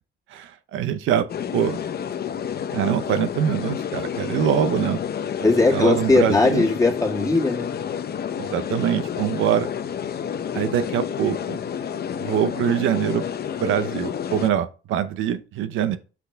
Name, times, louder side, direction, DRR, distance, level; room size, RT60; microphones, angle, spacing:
voice 1, 0.3-1.3 1.5-1.8 2.7-5.0 5.7-6.7 8.4-9.7 10.5-11.6 12.2-13.3 13.6-16.0, right 9 dB, 90° right, 0.8 m, -24 dB
sound 1, 1.3-14.5, left 8 dB, 50° left, 0.8 m, -30 dB
voice 2, 5.4-7.7, left 3 dB, 15° left, 2.2 m, -19 dB
6.1 x 5.8 x 3.4 m
cardioid pair, 90°, 20 cm